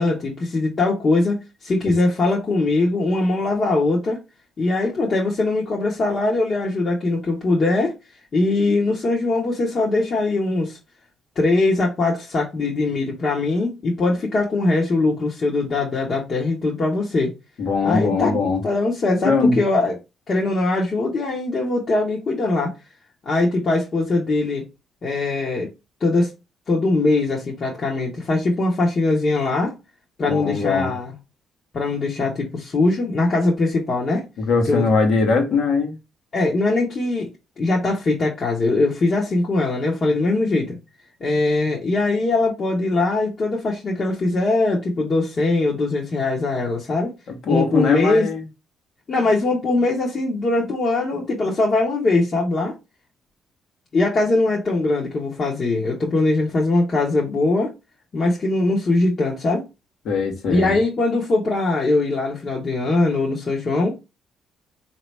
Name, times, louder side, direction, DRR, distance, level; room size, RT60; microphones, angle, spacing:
voice 1, 0.0-4.2 4.6-7.9 8.3-10.8 11.3-17.3 17.8-18.4 18.6-20.0 20.3-22.7 23.2-24.6 25.0-25.7 26.0-26.3 26.7-29.7 30.2-31.1 31.7-34.2 34.7-34.8 36.3-37.3 37.6-40.8 41.2-47.1 47.5-48.3 49.1-52.7 53.9-57.7 58.1-59.6 60.5-64.0, left 2 dB, 45° left, 1.2 m, -21 dB
voice 2, 17.6-18.6 19.2-19.6 30.3-30.9 34.4-35.9 47.5-48.4 60.0-60.8, left 4 dB, 70° left, 1.4 m, -20 dB
4.0 x 2.9 x 3.3 m
cardioid pair, 90°, 0 cm